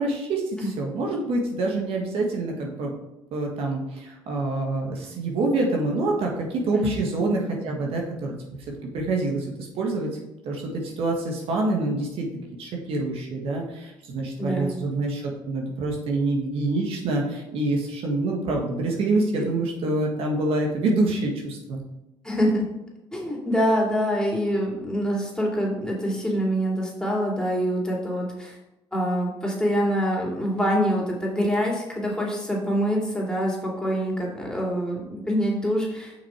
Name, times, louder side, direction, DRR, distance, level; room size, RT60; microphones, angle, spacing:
voice 1, 0.0-0.4 0.8-2.9 3.3-8.3 8.8-10.1 10.4-12.3 12.6-21.8, right 2 dB, 70° right, 0 dB, 1.7 m, -26 dB
voice 2, 14.4-14.7 22.2-22.6 23.1-28.6 28.9-36.1, equal, 5° left, -3 dB, 2.8 m, -25 dB
6.6 x 5.7 x 4.5 m, 0.95 s
supercardioid pair, 75°, 10 cm